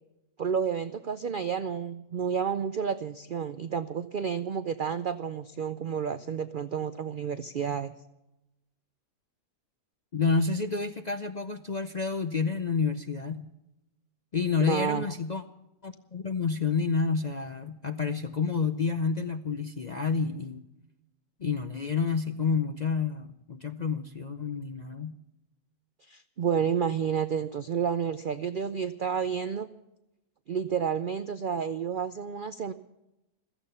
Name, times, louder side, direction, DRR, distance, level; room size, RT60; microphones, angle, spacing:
voice 1, 0.4-7.9 14.6-15.1 26.1-29.7 30.5-32.7, right 7 dB, 85° right, 11 dB, 0.4 m, -30 dB
voice 2, 10.1-13.5 14.3-15.4 15.8-20.7 21.4-25.2, left 5 dB, 55° left, 8 dB, 0.5 m, -29 dB
16.0 x 14.0 x 5.6 m, 0.92 s
omnidirectional pair, 1.6 m